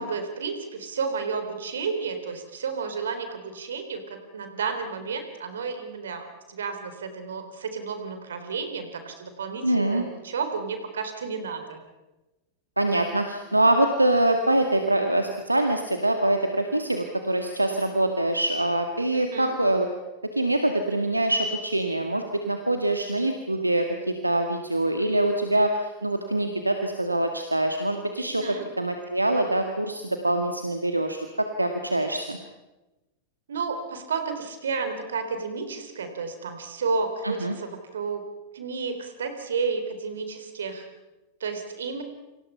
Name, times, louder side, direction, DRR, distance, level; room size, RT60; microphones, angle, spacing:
voice 1, 0.0-11.8 19.1-19.6 28.4-28.7 33.5-38.2 38.5-40.9 41.4-42.0, right 5 dB, 65° right, 8 dB, 3.8 m, -32 dB
voice 2, 9.6-10.0 12.8-19.9 20.4-32.4 37.2-37.6, right 1 dB, 85° right, 5 dB, 1.8 m, -24 dB
29.0 x 25.5 x 5.7 m, 1.1 s
figure-of-eight pair, 90°, 0 cm